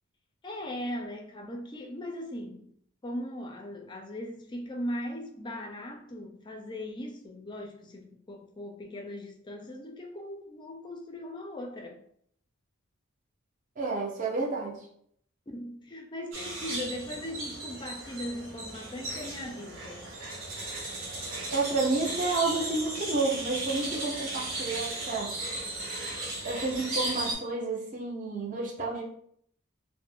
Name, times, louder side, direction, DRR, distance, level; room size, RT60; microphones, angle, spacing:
voice 1, 0.4-2.7 3.0-12.0 15.5-20.0 23.7-23.9, left 1 dB, 20° left, 0.4 m, -39 dB
voice 2, 13.8-14.8 21.5-25.3 26.4-29.0, right 3 dB, 40° right, 0.6 m, -30 dB
sound 1, 16.3-27.3, right 2 dB, 70° right, 0.8 m, -36 dB
2.3 x 2.1 x 3.6 m
head